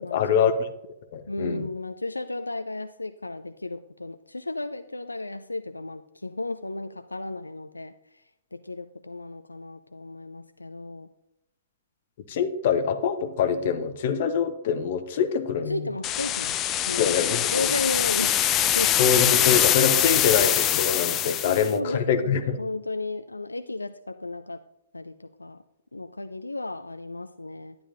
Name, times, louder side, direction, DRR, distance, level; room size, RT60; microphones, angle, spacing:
voice 1, 0.1-0.7 1.1-1.7 12.3-15.8 17.0-17.7 19.0-22.6, left 6 dB, 50° left, 9 dB, 0.9 m, -24 dB
voice 2, 1.3-8.2 8.5-11.1 15.7-17.2 17.5-18.4 18.7-19.0 21.4-24.6 24.9-25.6 25.9-27.8, left 2 dB, 85° left, 10 dB, 0.4 m, -34 dB
sound 1, 16.0-21.7, left 11 dB, 25° left, 0.4 m, -23 dB
11.0 x 10.5 x 2.6 m, 0.87 s
figure-of-eight pair, 115°, 0 cm